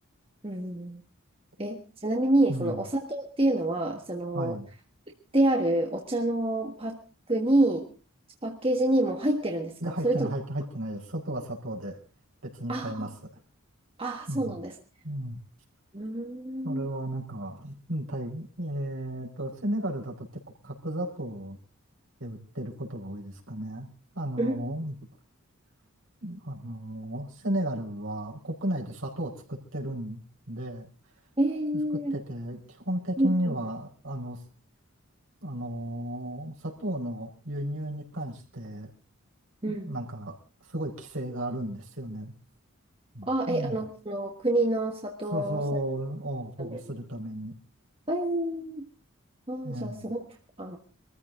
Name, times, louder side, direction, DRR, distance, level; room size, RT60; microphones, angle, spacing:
voice 1, 0.4-1.0 1.6-4.6 5.3-7.0 7.3-7.9 8.4-10.3 12.7-13.1 14.0-14.7 15.9-16.9 24.4-24.5 31.4-32.1 33.2-33.5 39.6-39.9 43.3-45.6 46.6-46.8 48.1-48.9 49.5-50.2 50.6-50.8, right 1 dB, 25° right, 2 dB, 1.5 m, -27 dB
voice 2, 2.5-2.8 4.3-4.7 9.8-12.0 12.4-13.1 14.3-14.6 15.0-15.4 16.6-21.6 22.2-23.9 24.1-25.0 26.2-30.2 30.5-30.9 31.9-34.4 35.4-38.9 39.7-40.4 40.6-42.3 43.1-43.8 45.3-47.5 49.6-50.0, right 1 dB, 65° right, 0 dB, 4.7 m, -34 dB
24.0 x 14.5 x 3.8 m, 0.35 s
head